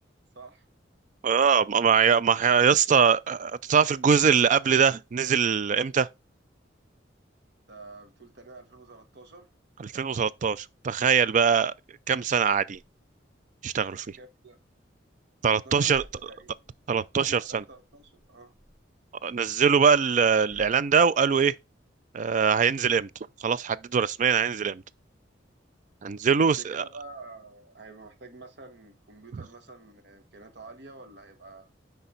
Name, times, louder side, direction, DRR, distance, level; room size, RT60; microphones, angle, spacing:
voice 1, 1.2-6.1 9.8-11.7 12.1-12.8 13.6-14.2 15.4-16.3 16.9-17.6 19.2-21.5 22.1-23.1 23.4-24.8 26.0-26.8 29.3-29.4, right 6 dB, 45° right, 0.3 m, -22 dB
voice 2, 7.7-9.5 14.2-14.6 15.5-15.9 16.3-16.6 17.2-18.5 26.4-31.7, right 3 dB, 65° right, 1.3 m, -48 dB
sound 1, 12.7-15.3 15.5-19.8 20.2-21.5, equal, 10° right, 3.3 m, -57 dB
9.8 x 3.4 x 3.9 m
head